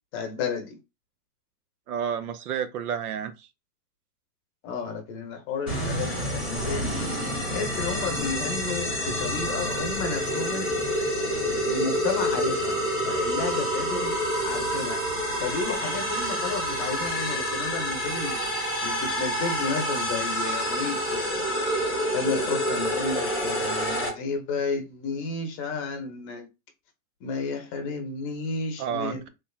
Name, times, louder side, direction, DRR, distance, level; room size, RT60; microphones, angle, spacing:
voice 1, 0.1-0.8 4.6-7.0 7.5-10.7 11.2-11.3 11.7-12.8 13.0-15.0 15.4-18.5 18.8-21.5 22.1-26.5 27.2-29.3, left 4 dB, 25° left, 0.7 m, -32 dB
voice 2, 1.9-3.5 28.8-29.3, right 8 dB, 75° right, 0.8 m, -30 dB
sound 1, 5.7-24.1, equal, 5° right, 0.3 m, -28 dB
3.4 x 3.0 x 2.3 m
hypercardioid pair, 135°, 46 cm